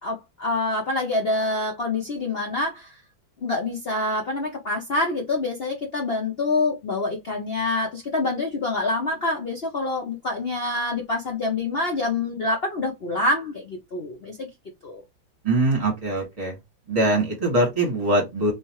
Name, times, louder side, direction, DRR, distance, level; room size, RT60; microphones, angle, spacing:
voice 1, 0.0-3.0 3.4-14.5 14.8-15.0, left 2 dB, 65° left, 0.5 m, -26 dB
voice 2, 15.4-16.5 16.9-18.5, right 1 dB, 20° right, 1.6 m, -22 dB
3.4 x 3.1 x 2.9 m
omnidirectional pair, 2.2 m